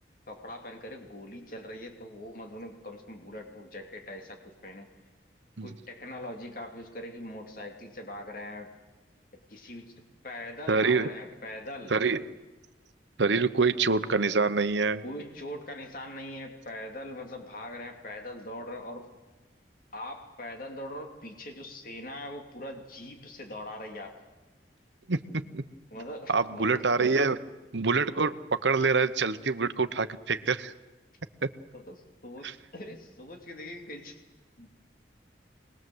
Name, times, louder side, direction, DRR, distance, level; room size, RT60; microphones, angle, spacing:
voice 1, 0.3-4.9 5.6-8.7 9.5-9.9 10.2-12.0 15.0-19.1 19.9-24.1 25.9-27.2 31.7-34.2 34.6-34.7, left 1 dB, 50° left, 3 dB, 2.9 m, -42 dB
voice 2, 10.7-11.1 11.9-12.2 13.2-15.0 25.1-25.6 26.3-27.4 27.7-30.7 31.4-31.5 32.4-32.5, right 4 dB, 85° right, 11 dB, 0.9 m, -26 dB
25.5 x 20.5 x 7.9 m, 1.1 s
head